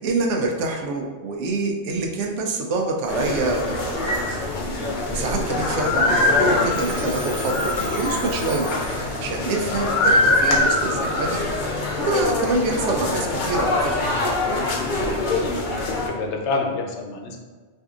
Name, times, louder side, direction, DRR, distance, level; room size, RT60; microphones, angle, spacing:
voice 1, 0.0-4.1 4.9-11.4 12.1-13.9, right 3 dB, 80° right, 2 dB, 0.9 m, -26 dB
sound 1, 3.1-16.1, left 2 dB, 55° left, 0.6 m, -23 dB
Telephone, 6.7-9.5, equal, 20° left, 1.0 m, -38 dB
voice 2, 15.2-17.4, left 3 dB, 75° left, 1 dB, 0.9 m, -29 dB
4.3 x 2.6 x 2.4 m, 1.4 s
omnidirectional pair, 1.2 m